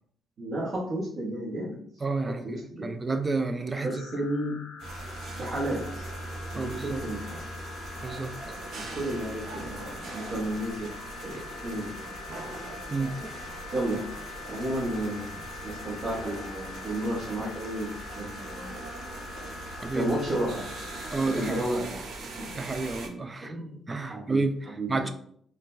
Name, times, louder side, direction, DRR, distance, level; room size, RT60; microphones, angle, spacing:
voice 1, 0.4-1.8 2.3-2.9 3.8-4.6 5.4-6.1 6.5-7.4 8.7-10.9 11.2-12.1 13.7-14.2 14.5-18.7 19.9-20.7 21.3-22.0 22.4-22.7 23.4-24.4 24.8-25.1, right 1 dB, 55° right, -8 dB, 1.0 m, -32 dB
voice 2, 2.0-3.9 6.6-7.0 8.0-8.3 11.3-11.4 12.9-13.3 19.8-20.1 21.1-21.7 22.5-23.5 23.9-25.1, right 3 dB, 25° right, 9 dB, 0.3 m, -30 dB
sound 1, 3.7-21.6, left 6 dB, 60° left, 0.7 m, -44 dB
electric saw, 4.8-23.1, right 2 dB, 75° right, 0.6 m, -40 dB
3.8 x 2.2 x 2.5 m, 0.64 s
cardioid pair, 90°, 0 cm